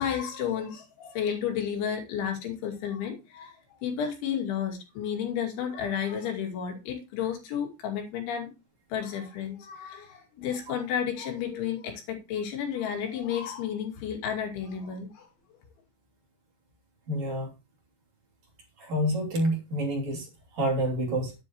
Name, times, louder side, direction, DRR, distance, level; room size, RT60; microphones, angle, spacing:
voice 1, 0.0-8.5 8.9-15.3, left 8 dB, 85° left, 2 dB, 4.9 m, -32 dB
voice 2, 17.1-17.5 18.8-20.3 20.5-21.3, equal, 40° right, 0 dB, 4.0 m, -28 dB
11.0 x 9.8 x 3.0 m, 0.26 s
omnidirectional pair, 5.2 m